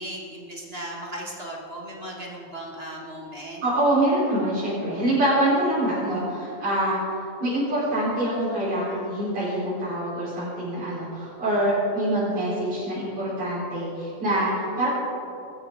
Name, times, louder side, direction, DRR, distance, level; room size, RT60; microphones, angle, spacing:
voice 1, 0.0-3.6, right 1 dB, 20° right, -2 dB, 1.9 m, -36 dB
voice 2, 3.6-14.9, right 1 dB, 65° right, -11 dB, 5.9 m, -25 dB
23.0 x 14.0 x 4.0 m, 2.7 s
omnidirectional pair, 3.6 m